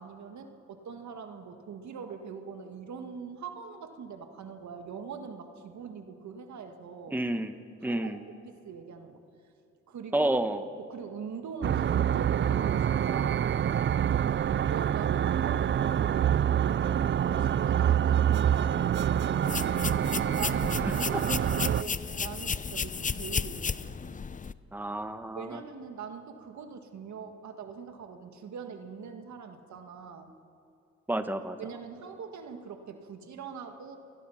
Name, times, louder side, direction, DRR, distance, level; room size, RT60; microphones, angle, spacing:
voice 1, 0.0-7.2 7.8-9.3 9.9-10.3 10.8-13.4 14.7-16.6 17.2-19.6 20.4-23.8 25.4-30.3 31.6-34.0, right 6 dB, 75° right, 6 dB, 2.0 m, -42 dB
voice 2, 7.1-7.5 7.8-8.2 10.1-10.6 21.1-21.2 24.7-25.6 31.1-31.6, right 1 dB, 5° right, 8 dB, 1.2 m, -30 dB
sound 1, 11.6-21.8, right 9 dB, 40° right, 0.4 m, -26 dB
sound 2, 19.4-24.5, left 5 dB, 25° left, 0.6 m, -33 dB
28.5 x 20.5 x 5.8 m, 2.6 s
cardioid pair, 70°, 29 cm